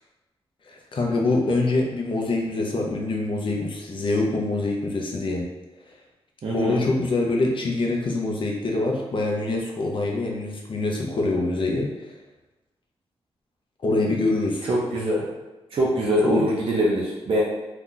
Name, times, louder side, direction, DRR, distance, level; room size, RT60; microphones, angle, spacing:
voice 1, 0.7-5.5 6.5-11.9 13.8-14.7 16.2-16.5, left 2 dB, 55° left, 0 dB, 0.7 m, -25 dB
voice 2, 6.4-6.8 14.7-15.3 15.7-17.4, equal, 60° right, -4 dB, 0.6 m, -23 dB
2.8 x 2.4 x 3.7 m, 1.1 s
wide cardioid pair, 100°, 11 cm